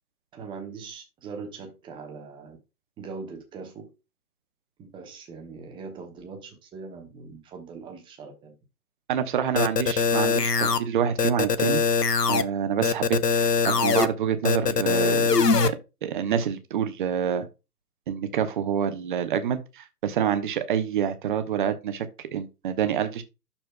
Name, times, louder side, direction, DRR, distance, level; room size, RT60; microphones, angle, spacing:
voice 1, 0.3-2.6 3.0-3.9 4.8-8.5, right 4 dB, 10° right, 1.1 m, -41 dB
voice 2, 9.1-11.8 12.3-15.3 15.6-15.7 16.0-17.5 18.1-22.1 22.3-23.2, right 8 dB, 30° right, 1.0 m, -27 dB
sound 1, 9.6-10.8 11.2-12.4 12.8-14.1 14.4-15.7, left 5 dB, 90° left, 0.8 m, -22 dB
12.5 x 4.4 x 2.2 m
figure-of-eight pair, 130°, 47 cm